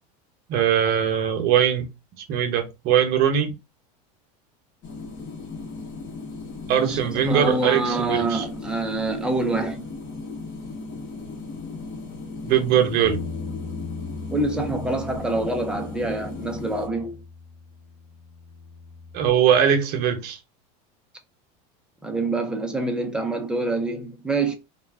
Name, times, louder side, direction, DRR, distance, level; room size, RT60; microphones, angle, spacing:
voice 1, 0.5-1.8 2.3-3.5 6.7-8.4 12.4-13.2 19.1-20.4, right 9 dB, 50° right, 0.8 m, -21 dB
sound 1, 4.8-16.9, left 3 dB, 40° left, 1.0 m, -36 dB
voice 2, 6.8-9.9 14.3-17.2 22.0-24.5, right 2 dB, 5° right, 0.5 m, -26 dB
Bass guitar, 13.0-19.3, left 4 dB, 80° left, 0.4 m, -38 dB
2.4 x 2.2 x 3.3 m
supercardioid pair, 135°, 20 cm